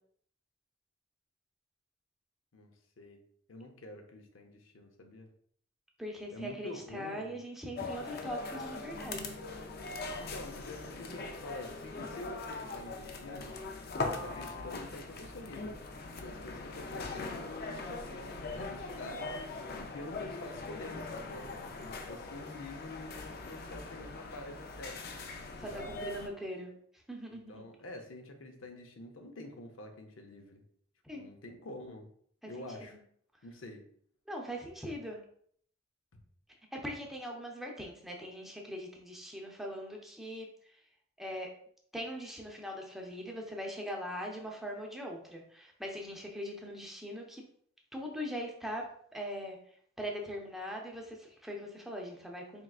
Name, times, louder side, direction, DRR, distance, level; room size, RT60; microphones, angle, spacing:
voice 1, 3.5-5.3 6.3-7.4 10.2-13.5 14.0-15.8 16.2-25.0 25.7-26.0 27.5-30.6 31.1-32.1 32.5-32.9 33.4-33.8 36.1-36.2, left 1 dB, 90° left, 4 dB, 0.7 m, -47 dB
voice 2, 6.0-9.3 25.6-27.6 31.0-31.3 32.4-32.9 34.3-35.2 36.7-40.8 41.2-41.5 41.9-47.4 47.9-48.9 49.1-49.6 50.0-52.6, equal, ahead, -1 dB, 0.6 m, -41 dB
sound 1, 7.8-26.3, left 3 dB, 50° left, 0.5 m, -41 dB
4.5 x 3.6 x 2.4 m, 0.62 s
head